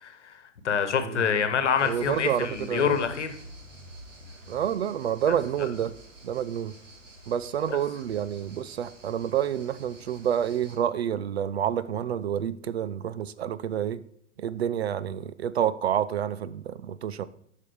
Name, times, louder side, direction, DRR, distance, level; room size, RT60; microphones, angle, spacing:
voice 1, 0.0-0.4 0.6-3.4 7.7-7.8, left 7 dB, 65° left, 9 dB, 1.2 m, -26 dB
voice 2, 1.8-3.0 4.5-5.9 6.2-6.7 7.3-14.0 14.4-17.2, right 9 dB, 55° right, 16 dB, 0.5 m, -28 dB
sound 1, 1.8-10.8, right 1 dB, 70° right, 2.1 m, -48 dB
8.1 x 5.6 x 4.9 m, 0.70 s
figure-of-eight pair, 110°, 38 cm